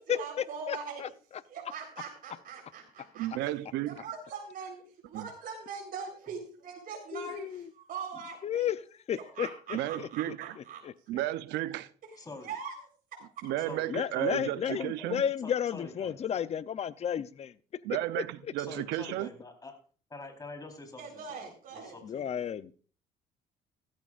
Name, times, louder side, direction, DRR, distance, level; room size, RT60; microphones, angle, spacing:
voice 1, 0.1-1.1 1.5-3.5 3.9-8.7 9.1-10.8 12.1-12.7 13.1-13.5 21.0-22.3, right 5 dB, 55° right, 4.2 m, -42 dB
voice 2, 0.7-1.1 7.1-7.7 8.4-8.8 9.1-9.5 10.0-10.1 10.8-10.9 13.9-17.5 22.0-22.7, left 9 dB, 40° left, 0.7 m, -32 dB
voice 3, 3.1-4.1 5.1-5.3 9.7-10.6 11.1-11.9 13.4-15.2 17.8-19.3, right 14 dB, 90° right, 0.7 m, -33 dB
voice 4, 12.2-12.5 13.6-14.4 14.7-14.9 15.4-16.2 18.6-19.7 20.1-22.3, left 3 dB, 20° left, 4.1 m, -46 dB
16.0 x 14.0 x 2.5 m
cardioid pair, 110°, 17 cm